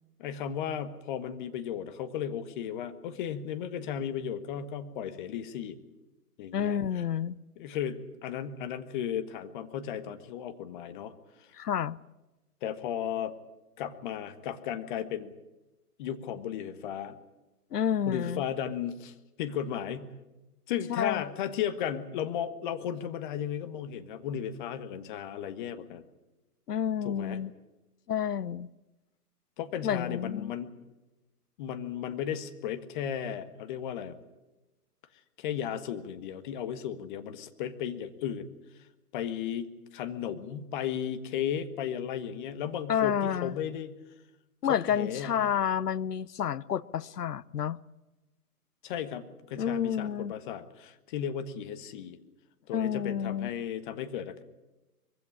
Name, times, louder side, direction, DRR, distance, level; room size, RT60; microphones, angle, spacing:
voice 1, 0.2-5.8 6.4-7.0 7.6-11.1 12.6-13.3 13.8-15.3 16.0-17.2 18.1-20.1 20.7-26.0 27.0-27.4 29.6-30.7 31.6-34.2 35.4-38.5 39.1-44.0 44.7-45.5 48.8-52.2 52.7-54.4, left 9 dB, 30° left, 11 dB, 1.5 m, -35 dB
voice 2, 6.5-7.4 11.5-12.0 17.7-18.4 20.9-21.3 26.7-27.5 28.1-28.7 29.8-30.5 42.9-43.5 44.6-47.8 49.6-50.3 52.7-53.5, left 8 dB, 80° left, 19 dB, 0.8 m, -30 dB
22.5 x 16.0 x 9.9 m, 1.1 s
hypercardioid pair, 140°, 46 cm